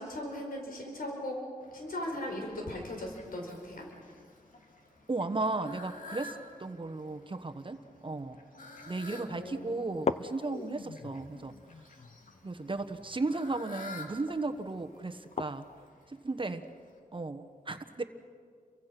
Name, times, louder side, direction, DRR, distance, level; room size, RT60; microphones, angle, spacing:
voice 1, 0.0-1.4 1.7-3.8 9.2-9.8, left 1 dB, 85° left, 0 dB, 4.8 m, -38 dB
Fowl, 1.6-17.0, left 2 dB, 65° left, 3.0 m, -52 dB
voice 2, 5.1-7.8 8.0-8.4 8.9-11.5 12.4-15.7 16.1-16.6 17.1-18.0, right 3 dB, 35° right, 8 dB, 1.2 m, -35 dB
sound 1, 8.8-8.9 9.3-9.4 9.9-15.9, left 4 dB, 45° left, 0.8 m, -40 dB
30.0 x 24.0 x 6.0 m, 2.1 s
wide cardioid pair, 105°, 15 cm